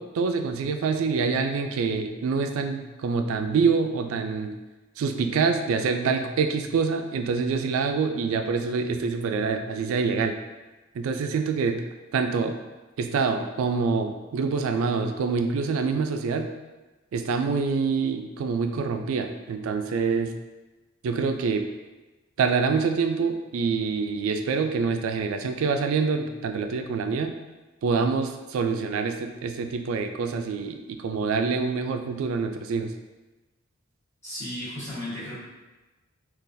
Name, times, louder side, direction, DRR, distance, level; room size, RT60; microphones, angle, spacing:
voice 1, 0.0-4.5 5.0-10.3 10.9-11.8 12.1-12.6 13.0-16.5 17.1-20.3 21.0-21.6 22.4-27.3 27.8-32.9, right 5 dB, 75° right, 6 dB, 0.3 m, -26 dB
voice 2, 34.2-35.4, left 1 dB, 15° left, -11 dB, 1.2 m, -34 dB
3.8 x 2.4 x 2.6 m, 1.1 s
head